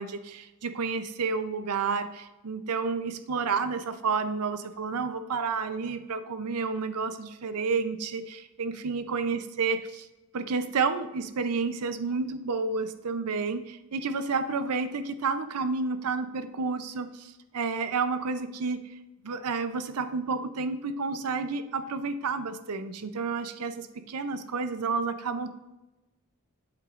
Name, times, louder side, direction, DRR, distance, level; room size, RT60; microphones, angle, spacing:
voice 1, 0.0-10.1 10.3-18.8 19.2-25.5, right 4 dB, 85° right, 10 dB, 0.6 m, -30 dB
8.2 x 7.7 x 2.5 m, 1.0 s
head